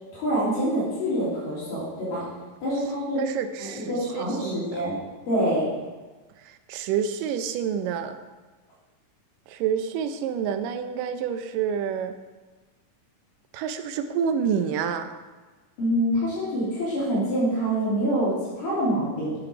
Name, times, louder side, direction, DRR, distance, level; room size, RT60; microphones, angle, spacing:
voice 1, 0.1-2.2 2.6-3.2 3.6-5.0 5.3-5.7 15.8-19.3, equal, 80° left, -9 dB, 4.8 m, -26 dB
voice 2, 3.2-4.8 6.7-8.2 9.5-12.2 13.5-15.1, right 7 dB, 80° right, 9 dB, 2.2 m, -28 dB
10.5 x 5.9 x 4.9 m, 1.3 s
omnidirectional pair, 3.9 m